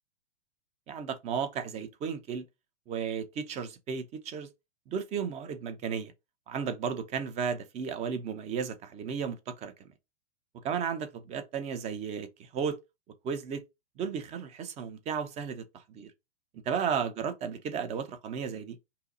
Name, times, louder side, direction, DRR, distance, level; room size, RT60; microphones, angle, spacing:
voice 1, 0.9-2.4 2.9-4.5 4.9-6.1 6.5-9.9 10.6-12.8 13.2-13.6 14.0-16.1 16.7-18.8, right 7 dB, 20° right, 0.6 m, -34 dB
5.6 x 2.0 x 3.9 m
hypercardioid pair, 135°, 35 cm